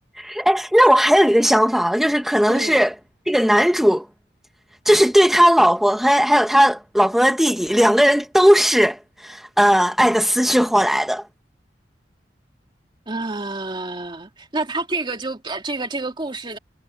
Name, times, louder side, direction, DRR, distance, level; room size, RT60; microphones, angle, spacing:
voice 1, 0.2-2.9 3.3-4.1 4.8-11.2, equal, ahead, 0.9 m, -17 dB
voice 2, 2.5-2.8 13.1-16.6, right 2 dB, 25° right, 2.4 m, -28 dB
head